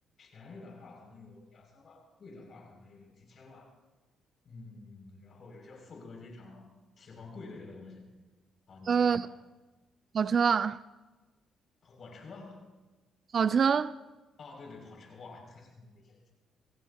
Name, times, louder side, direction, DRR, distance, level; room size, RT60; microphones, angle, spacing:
voice 1, 0.2-3.8 4.4-8.1 8.7-9.3 11.8-12.7 14.4-16.3, left 3 dB, 55° left, 6.3 m, -49 dB
voice 2, 8.9-9.3 10.1-10.8 13.3-13.9, right 6 dB, 50° right, 0.4 m, -25 dB
26.5 x 16.0 x 2.9 m
cardioid pair, 90°, 0 cm